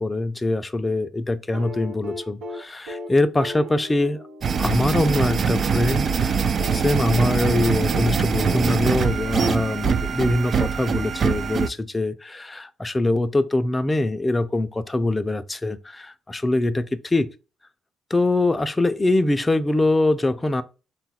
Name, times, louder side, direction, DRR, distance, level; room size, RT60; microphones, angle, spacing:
voice 1, 0.0-4.2 4.6-17.2 18.1-20.6, left 2 dB, 20° left, 0.4 m, -23 dB
sound 1, 1.5-5.6 6.6-10.2 11.6-11.7, left 1 dB, 85° right, 0.7 m, -37 dB
sound 2, 4.4-11.7, right 6 dB, 50° right, 0.3 m, -23 dB
3.9 x 2.3 x 4.1 m
cardioid pair, 90°, 0 cm